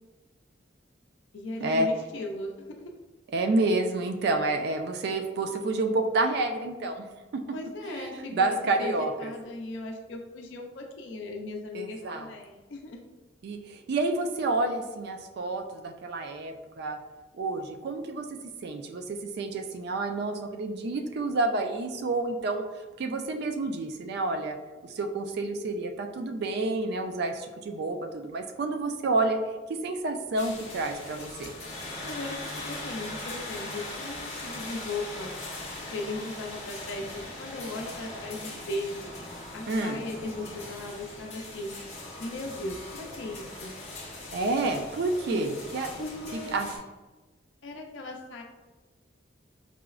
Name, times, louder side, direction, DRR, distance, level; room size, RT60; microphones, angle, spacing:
voice 1, 1.3-2.9 7.5-13.0 32.0-35.3 35.9-39.1 39.5-41.7 42.2-43.7 45.3-45.5 46.0-46.6 47.6-48.4, left 2 dB, 75° left, 1 dB, 0.4 m, -37 dB
voice 2, 3.3-7.1 7.3-7.4 7.9-9.3 11.7-12.3 13.4-17.0 17.3-18.3 18.6-22.6 23.0-24.6 24.9-29.4 29.8-31.5 39.7-40.0 44.3-45.9 46.3-46.7, right 2 dB, 55° right, 5 dB, 0.3 m, -29 dB
sound 1, 30.4-46.8, left 2 dB, 35° left, 0.7 m, -40 dB
4.8 x 2.0 x 2.3 m, 1.2 s
head